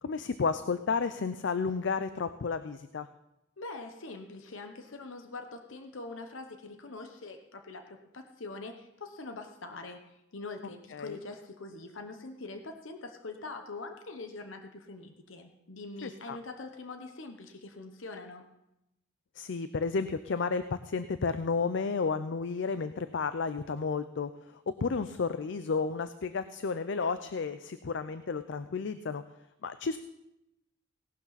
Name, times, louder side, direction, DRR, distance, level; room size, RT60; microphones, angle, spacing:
voice 1, 0.0-3.1 10.9-11.2 16.0-16.4 19.4-24.3 24.8-29.2 29.6-30.0, left 4 dB, 65° left, 12 dB, 0.5 m, -32 dB
voice 2, 3.6-18.4, left 3 dB, 80° left, 6 dB, 1.0 m, -43 dB
17.5 x 11.5 x 4.1 m, 0.88 s
head